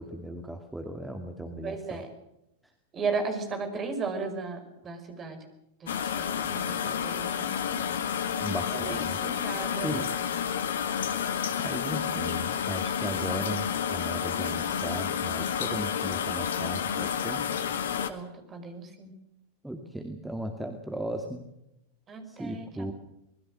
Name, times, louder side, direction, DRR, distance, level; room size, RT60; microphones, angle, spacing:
voice 1, 0.0-2.0 8.4-9.3 9.8-10.1 11.3-17.4 19.6-21.5 22.3-22.9, right 1 dB, 5° right, 5 dB, 2.4 m, -37 dB
voice 2, 1.6-2.1 2.9-5.4 5.8-5.9 6.2-7.8 8.7-10.1 18.1-19.1 22.1-22.9, right 4 dB, 25° right, 7 dB, 5.6 m, -35 dB
sound 1, 5.9-18.1, left 8 dB, 60° left, 1.8 m, -30 dB
25.0 x 21.0 x 6.4 m, 0.84 s
figure-of-eight pair, 90°, 0 cm